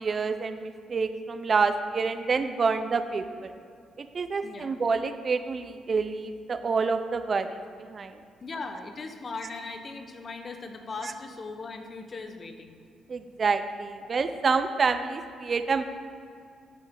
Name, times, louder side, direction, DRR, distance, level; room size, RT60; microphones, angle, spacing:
voice 1, 0.0-3.5 4.0-8.1 13.1-15.8, right 4 dB, 40° right, 9 dB, 0.6 m, -28 dB
voice 2, 4.4-4.7 8.4-12.8, left 3 dB, 40° left, 6 dB, 1.1 m, -39 dB
13.0 x 7.7 x 3.8 m, 2.3 s
cardioid pair, 90°, 0 cm